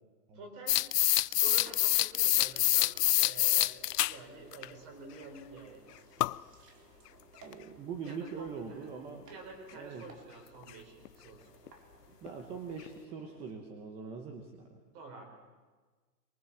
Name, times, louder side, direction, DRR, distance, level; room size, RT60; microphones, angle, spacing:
voice 1, 0.3-0.8 1.1-5.8 8.0-8.8 9.3-11.5 14.9-15.2, right 3 dB, 30° right, 4 dB, 4.8 m, -49 dB
sound 1, 0.7-4.2 4.5-4.6 6.2-6.4 7.5-7.6 10.7-10.8 11.0-11.1 11.7-11.8 12.3-12.4 12.9-13.0, left 14 dB, 75° left, 0.6 m, -26 dB
Engine, 1.4-13.5, right 3 dB, 80° right, 4.7 m, -59 dB
voice 2, 7.4-9.3 9.7-10.0 12.2-14.7, right 5 dB, 10° right, 4 dB, 1.0 m, -42 dB
23.5 x 23.0 x 7.2 m, 1.4 s
hypercardioid pair, 165°, 48 cm